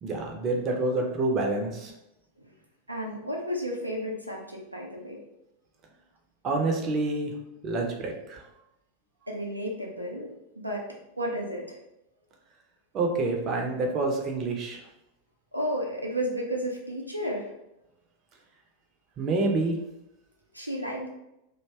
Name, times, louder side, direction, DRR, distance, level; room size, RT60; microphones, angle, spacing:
voice 1, 0.0-1.9 6.4-7.3 7.6-8.4 12.9-14.8 19.2-19.8, right 2 dB, 30° right, 1 dB, 0.6 m, -27 dB
voice 2, 2.9-5.2 9.3-10.8 11.2-11.8 15.5-17.5 20.5-21.1, equal, 85° right, 0 dB, 0.6 m, -32 dB
2.6 x 2.2 x 3.3 m, 0.86 s
figure-of-eight pair, 90°, 0 cm